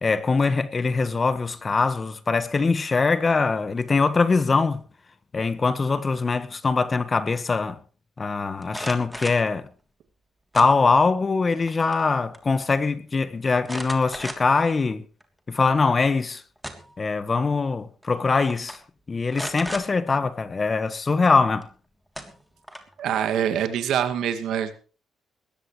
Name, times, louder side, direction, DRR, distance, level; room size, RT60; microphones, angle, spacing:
voice 1, 0.0-4.9 5.3-7.8 8.2-9.7 10.5-15.0 15.5-16.4 17.0-18.8 19.1-21.7, left 4 dB, 30° left, 1.5 m, -22 dB
sound 1, 8.6-9.5 10.5-11.1 11.5-12.1 12.3-12.4 13.6-14.7 15.2-15.3 16.3-17.0 18.0-18.2 18.5-18.8 19.3-19.9 21.6-21.7 22.1-23.0, equal, ahead, 3.2 m, -36 dB
voice 2, 23.0-24.8, right 9 dB, 80° right, 2.2 m, -25 dB
20.5 x 16.5 x 3.3 m
cardioid pair, 90°, 0 cm